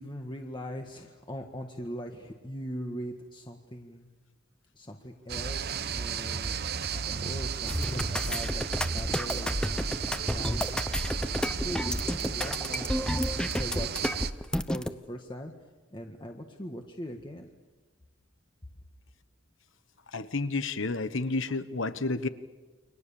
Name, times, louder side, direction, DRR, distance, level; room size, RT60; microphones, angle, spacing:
voice 1, 0.0-4.1 4.7-6.6 6.9-14.1 14.7-15.5 15.9-17.5, equal, 25° left, 3 dB, 1.7 m, -41 dB
sound 1, 5.3-14.3, right 7 dB, 50° right, 0.9 m, -34 dB
sound 2, 7.7-14.9, equal, 5° left, 0.9 m, -31 dB
voice 2, 20.1-22.3, left 3 dB, 65° left, 12 dB, 1.3 m, -30 dB
30.0 x 24.5 x 7.1 m, 1.3 s
head